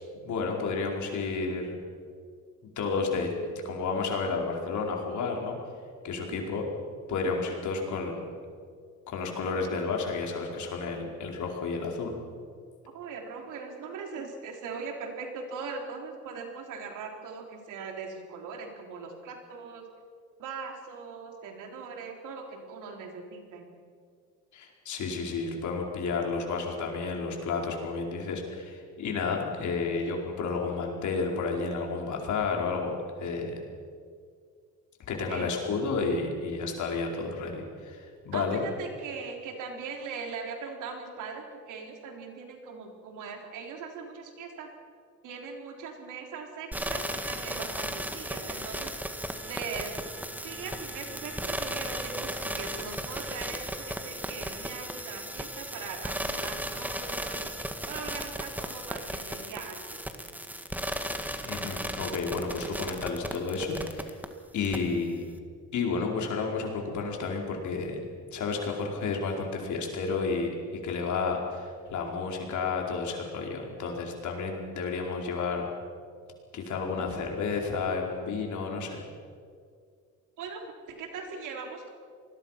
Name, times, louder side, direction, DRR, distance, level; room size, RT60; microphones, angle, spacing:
voice 1, 0.1-1.8 2.8-5.5 6.0-6.6 7.1-8.3 9.1-12.1 24.5-33.5 35.1-38.6 61.4-64.2 64.5-65.3 65.7-68.0 68.3-75.7 76.5-79.0, left 4 dB, 75° left, 1 dB, 4.8 m, -31 dB
voice 2, 12.9-19.9 20.4-23.6 35.3-35.5 38.3-44.7 45.2-49.0 49.5-50.0 50.4-57.6 57.9-60.3 80.4-81.9, right 5 dB, 90° right, 3 dB, 3.8 m, -40 dB
sound 1, 46.7-64.3 64.6-64.8, right 1 dB, 5° right, 1.9 m, -35 dB
27.5 x 20.5 x 5.9 m, 2.1 s
cardioid pair, 90°, 30 cm